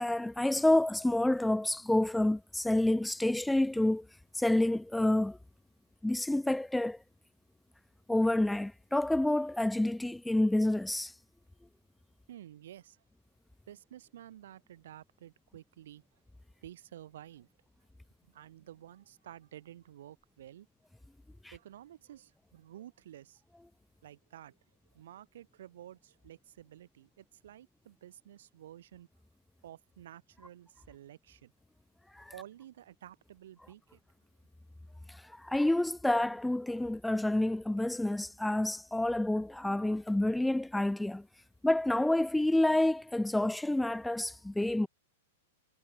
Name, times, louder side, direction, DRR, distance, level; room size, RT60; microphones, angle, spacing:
voice 1, 0.0-4.1 4.3-5.4 6.0-7.0 8.1-11.1 32.1-32.3 35.1-41.2 41.6-44.9, left 1 dB, 5° left, 0.3 m, -28 dB
voice 2, 12.3-13.0 13.7-16.1 16.6-17.5 18.2-20.7 21.5-23.4 24.0-24.6 24.9-29.1 29.6-31.5 32.3-34.0, right 12 dB, 65° right, 3.4 m, -51 dB
hypercardioid pair, 105°, 0 cm